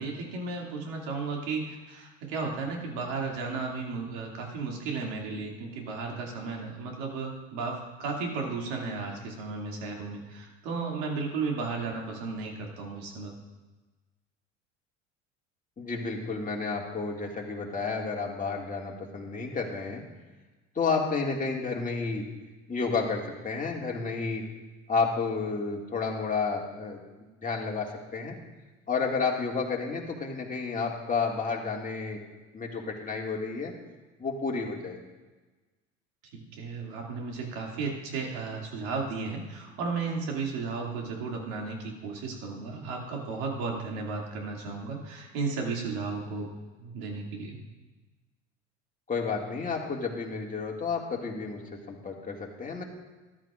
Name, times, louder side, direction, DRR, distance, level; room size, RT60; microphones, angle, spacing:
voice 1, 0.0-13.3 36.6-46.5 46.8-47.6, right 4 dB, 70° right, 0 dB, 2.5 m, -34 dB
voice 2, 15.8-20.0 20.8-22.2 22.7-24.4 24.9-27.0 27.4-27.9 28.1-28.4 28.9-32.2 32.5-33.7 34.2-35.0 49.1-51.6 51.9-52.8, left 4 dB, 20° left, -1 dB, 2.1 m, -31 dB
14.0 x 12.0 x 2.5 m, 1.2 s
hypercardioid pair, 70°, 38 cm